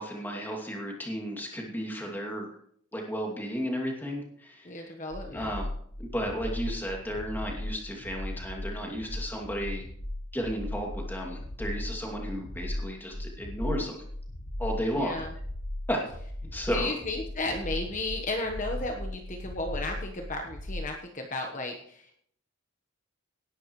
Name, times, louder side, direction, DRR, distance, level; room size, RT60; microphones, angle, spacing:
voice 1, 0.0-2.5 2.9-4.9 5.3-5.7 6.0-9.8 10.3-14.0 14.6-15.1 15.9-16.0 16.5-16.9, equal, 10° left, 0 dB, 2.5 m, -33 dB
voice 2, 4.6-5.5 15.0-15.3 16.7-22.2, left 2 dB, 35° left, 2 dB, 1.2 m, -34 dB
sound 1, 5.1-20.9, left 1 dB, 65° left, 1.6 m, -37 dB
18.0 x 11.0 x 3.2 m, 0.64 s
head